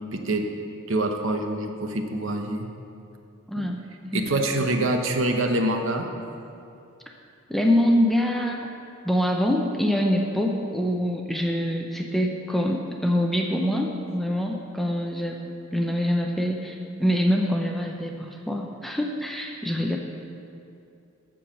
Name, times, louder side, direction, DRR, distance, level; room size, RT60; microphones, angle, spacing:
voice 1, 0.1-0.5 0.9-2.7 3.6-3.7 4.1-6.1, right 1 dB, 65° right, 4 dB, 0.9 m, -25 dB
voice 2, 3.5-3.8 4.1-4.4 7.5-8.7 9.0-20.0, equal, ahead, 1 dB, 0.5 m, -25 dB
12.5 x 4.7 x 7.2 m, 2.6 s
head